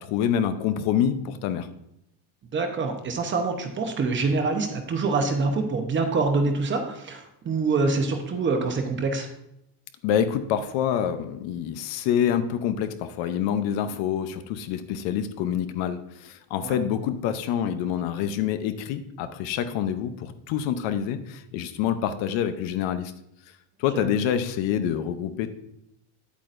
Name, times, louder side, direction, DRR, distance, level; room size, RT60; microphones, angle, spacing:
voice 1, 0.0-1.7 10.0-23.1 23.8-25.5, left 9 dB, 70° left, 10 dB, 0.8 m, -26 dB
voice 2, 2.5-9.3 16.6-16.8 23.9-24.1, right 3 dB, 25° right, 4 dB, 0.8 m, -25 dB
9.6 x 8.5 x 2.6 m, 0.79 s
cardioid pair, 175°, 47 cm